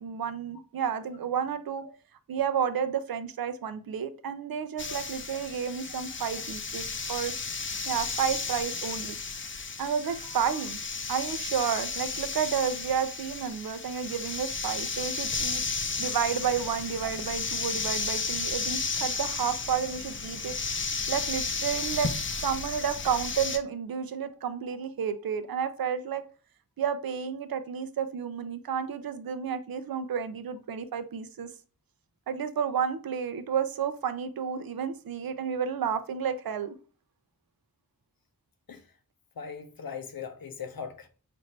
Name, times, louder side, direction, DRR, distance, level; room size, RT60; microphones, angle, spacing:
voice 1, 0.0-1.9 2.3-7.3 7.8-9.2 9.8-10.8 11.1-15.6 16.0-20.6 21.1-22.1 22.4-26.2 26.8-31.5 32.3-36.7, right 7 dB, 85° right, 0.5 m, -31 dB
sound 1, 4.8-23.6, left 4 dB, 35° left, 0.5 m, -33 dB
voice 2, 39.4-41.1, left 6 dB, 85° left, 0.7 m, -40 dB
4.1 x 2.6 x 3.1 m
wide cardioid pair, 55°, 35 cm